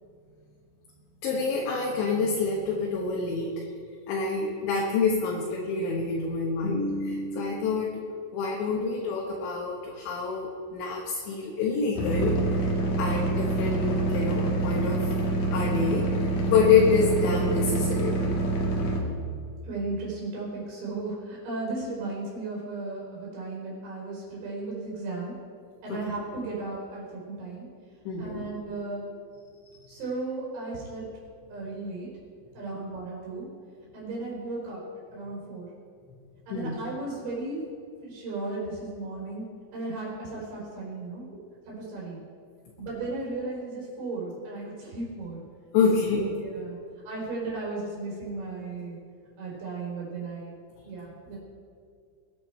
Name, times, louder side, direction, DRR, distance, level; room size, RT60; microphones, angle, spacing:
voice 1, 1.2-3.7 4.1-8.0 8.3-15.1 15.5-16.1 16.5-18.2 25.9-26.0 28.1-28.4 36.5-36.7 45.7-46.3, left 4 dB, 70° left, -2 dB, 3.5 m, -27 dB
sound 1, 12.0-19.0, right 2 dB, 55° left, 2.6 m, -26 dB
voice 2, 19.6-25.3 25.8-27.7 28.2-29.0 29.9-31.1 31.5-32.1 32.5-33.5 33.9-34.8 35.1-35.7 36.5-37.6 38.0-39.4 39.7-41.2 41.7-42.2 42.8-45.4 46.1-46.8 47.1-49.0 49.4-50.5 50.8-51.4, right 3 dB, 65° right, -5 dB, 6.3 m, -35 dB
21.5 x 10.0 x 4.5 m, 2.3 s
omnidirectional pair, 5.6 m